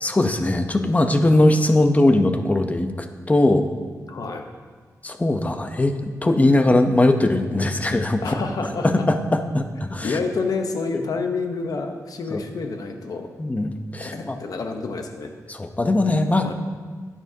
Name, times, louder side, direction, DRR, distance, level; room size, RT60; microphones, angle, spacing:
voice 1, 0.0-3.7 5.0-8.3 8.8-10.2 10.9-11.1 12.3-12.4 13.4-14.4 15.5-16.5, left 2 dB, 25° left, 7 dB, 0.7 m, -20 dB
voice 2, 4.1-4.4 8.2-9.1 10.0-13.3 14.0-15.3 16.4-16.5, left 4 dB, 75° left, 4 dB, 0.8 m, -28 dB
10.0 x 9.8 x 2.7 m, 1.5 s
wide cardioid pair, 95°, 6 cm